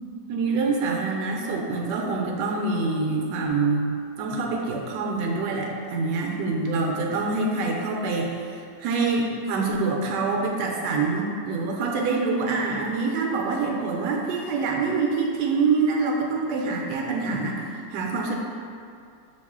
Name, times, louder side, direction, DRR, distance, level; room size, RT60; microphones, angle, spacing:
voice 1, 0.3-3.9 4.2-18.3, right 4 dB, 75° right, 0 dB, 1.1 m, -25 dB
6.0 x 2.4 x 3.6 m, 2.5 s
omnidirectional pair, 1.9 m